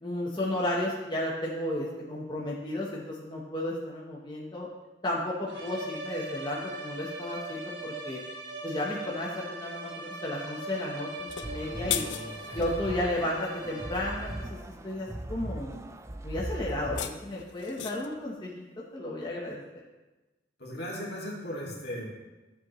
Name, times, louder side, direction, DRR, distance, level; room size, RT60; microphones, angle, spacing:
voice 1, 0.0-4.7 5.0-8.2 8.6-12.0 12.5-14.5 14.8-15.7 16.2-18.6 18.9-19.8, left 1 dB, 25° left, -4 dB, 1.1 m, -33 dB
sound 1, 5.5-14.7, right 2 dB, 85° right, 1.5 m, -41 dB
sound 2, 11.2-12.7 16.7-18.2, left 10 dB, 90° left, 0.6 m, -36 dB
sound 3, 11.4-17.0, right 1 dB, 15° right, 0.5 m, -39 dB
voice 2, 11.7-12.7 20.6-22.2, equal, 65° left, -4 dB, 2.4 m, -38 dB
13.0 x 7.3 x 3.1 m, 1.1 s
head